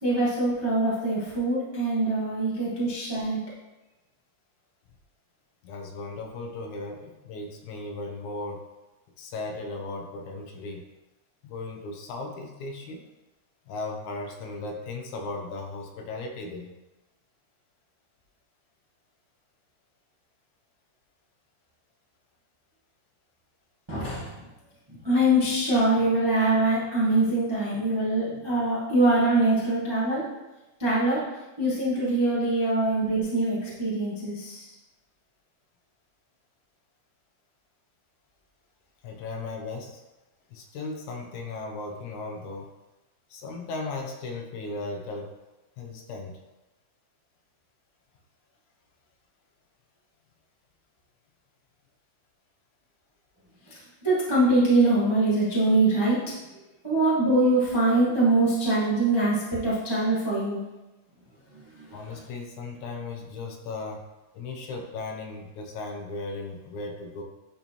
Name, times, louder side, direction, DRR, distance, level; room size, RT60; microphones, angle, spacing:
voice 1, 0.0-3.4 23.9-24.5 24.9-30.3 30.8-31.2 31.6-34.7 53.6-56.3 56.8-60.6 61.7-62.0, right 2 dB, 20° right, -8 dB, 0.6 m, -23 dB
voice 2, 5.6-8.7 9.2-10.8 11.4-13.0 13.7-16.7 24.9-25.0 39.0-40.0 40.5-42.7 43.3-45.3 45.8-46.4 61.9-64.0 64.3-67.2, left 3 dB, 75° left, 2 dB, 2.2 m, -36 dB
10.5 x 4.3 x 3.0 m, 1.0 s
omnidirectional pair, 3.6 m